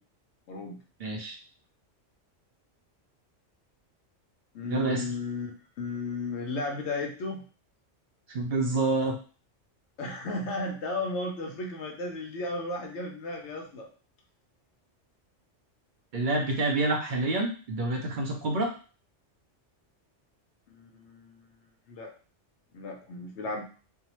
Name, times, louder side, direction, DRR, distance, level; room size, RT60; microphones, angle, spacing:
voice 1, 0.5-0.8 4.5-5.5 5.8-7.4 10.0-13.9 20.7-21.5 21.9-22.1 22.7-23.6, left 2 dB, 70° left, 2 dB, 0.9 m, -34 dB
voice 2, 1.0-1.3 4.7-5.0 8.3-9.2 16.1-18.7, right 2 dB, 60° right, 1 dB, 0.5 m, -27 dB
2.6 x 2.0 x 2.9 m, 0.37 s
omnidirectional pair, 1.3 m